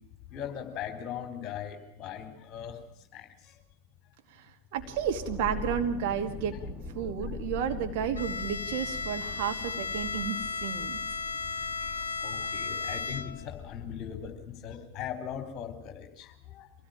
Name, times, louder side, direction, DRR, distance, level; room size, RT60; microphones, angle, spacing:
voice 1, 0.3-2.8 3.1-3.6 7.0-7.3 9.4-9.5 10.1-10.3 11.8-16.7, left 9 dB, 30° left, 6 dB, 4.2 m, -40 dB
voice 2, 4.7-6.6 6.9-11.0, right 8 dB, 45° right, 5 dB, 2.3 m, -32 dB
sound 1, 4.8-14.5, left 4 dB, ahead, 2.9 m, -43 dB
Bowed string instrument, 8.1-13.6, left 4 dB, 70° left, 0.8 m, -35 dB
25.0 x 17.5 x 8.9 m, 0.78 s
figure-of-eight pair, 90°, 0 cm